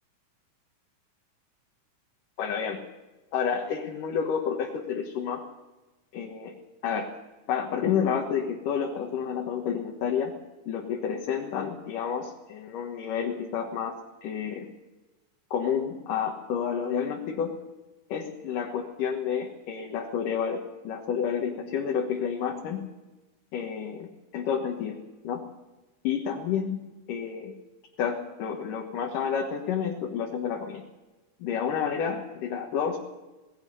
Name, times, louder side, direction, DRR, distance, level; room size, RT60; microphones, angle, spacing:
voice 1, 2.4-2.8 3.3-5.4 6.1-6.5 6.8-7.1 7.5-10.3 10.7-14.0 14.2-14.7 15.5-17.6 18.1-22.9 23.5-25.0 25.2-25.4 26.0-26.8 27.1-27.5 28.0-30.8 31.4-33.0, left 7 dB, 90° left, 1 dB, 3.1 m, -30 dB
19.5 x 16.5 x 8.1 m, 1.1 s
omnidirectional pair, 3.7 m